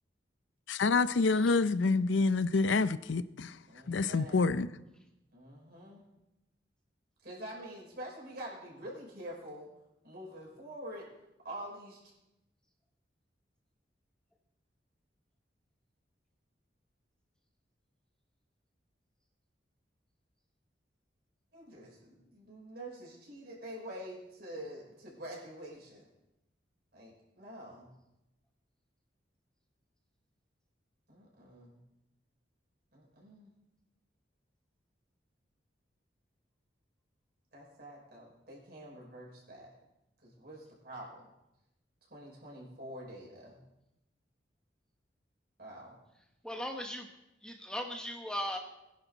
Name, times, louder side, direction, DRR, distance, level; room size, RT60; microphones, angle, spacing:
voice 1, 0.7-3.6 3.9-4.7, left 3 dB, 80° left, 0.5 m, -27 dB
voice 2, 3.7-4.5 5.3-6.0 7.2-9.7 10.0-11.1 11.4-12.0 21.5-26.0 26.9-27.9 31.1-31.8 32.9-33.5 37.5-39.7 40.2-41.3 42.1-43.6 45.6-46.0, right 1 dB, 55° right, 5.4 m, -46 dB
voice 3, 46.4-47.1 47.4-48.6, equal, 5° left, 1.0 m, -37 dB
22.5 x 10.5 x 4.0 m
head